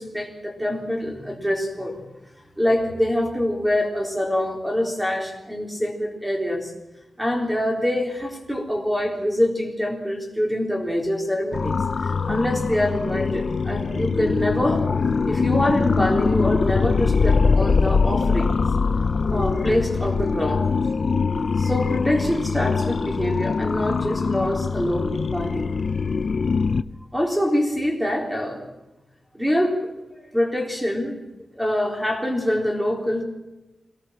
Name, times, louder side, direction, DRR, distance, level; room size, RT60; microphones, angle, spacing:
voice 1, 0.0-2.0 2.6-6.7 7.2-11.7 12.0-14.9 15.3-18.6 19.3-20.6 21.6-25.7 27.1-28.6 29.3-29.9 30.2-31.2 31.6-33.2, left 1 dB, 5° right, 2 dB, 3.9 m, -25 dB
sound 1, 11.5-26.8, left 4 dB, 45° left, 0.6 m, -22 dB
22.5 x 18.0 x 7.5 m, 1.0 s
wide cardioid pair, 165°, 0 cm